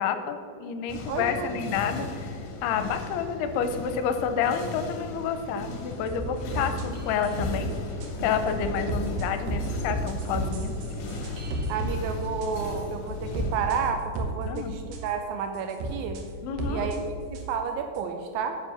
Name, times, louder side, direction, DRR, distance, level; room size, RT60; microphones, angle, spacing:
voice 1, 0.0-2.1 2.6-7.7 8.2-10.7 14.5-14.7 16.4-16.9, left 7 dB, 80° left, 8 dB, 2.6 m, -29 dB
sound 1, 0.9-13.9, left 3 dB, 65° left, 2.4 m, -36 dB
voice 2, 1.1-1.5 6.6-6.7 11.7-16.2 16.7-17.0 17.3-18.6, right 6 dB, 85° right, 6 dB, 2.1 m, -31 dB
sound 2, 6.1-7.6 8.0-8.1 8.5-12.0 12.4-12.5 13.3-13.8 14.2-14.6 14.9-15.0 15.7-16.2 16.6-17.0 17.3-17.4 18.0-18.1, right 2 dB, 70° right, 2.2 m, -32 dB
9.1 x 7.5 x 6.9 m, 2.4 s
omnidirectional pair, 4.9 m